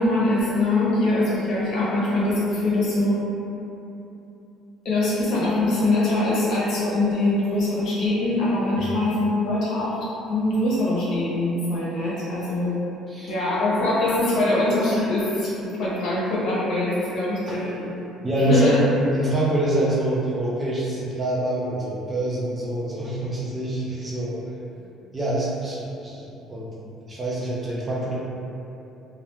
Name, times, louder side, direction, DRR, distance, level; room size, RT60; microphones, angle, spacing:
voice 1, 0.0-3.2 4.8-10.0 10.3-12.7 13.3-17.9 18.5-18.7, left 2 dB, 60° left, -7 dB, 0.8 m, -23 dB
voice 2, 18.2-24.4 25.1-26.2 26.5-26.7 27.1-28.1, right 1 dB, 20° right, -6 dB, 0.4 m, -25 dB
2.3 x 2.2 x 3.0 m, 2.8 s
cardioid pair, 140°, 0 cm